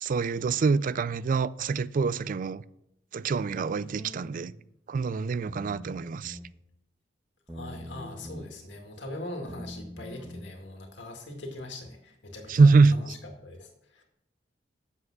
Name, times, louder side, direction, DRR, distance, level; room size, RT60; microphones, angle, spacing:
voice 1, 0.0-2.6 3.1-4.5 4.9-6.4 12.5-13.1, right 4 dB, 50° right, 0.4 m, -24 dB
sound 1, 3.5-4.5 5.5-6.5 7.5-8.5 9.5-10.5, equal, 10° right, 1.5 m, -43 dB
voice 2, 7.5-13.1 13.4-14.0, left 1 dB, 80° left, 1.9 m, -41 dB
8.3 x 7.2 x 6.2 m
head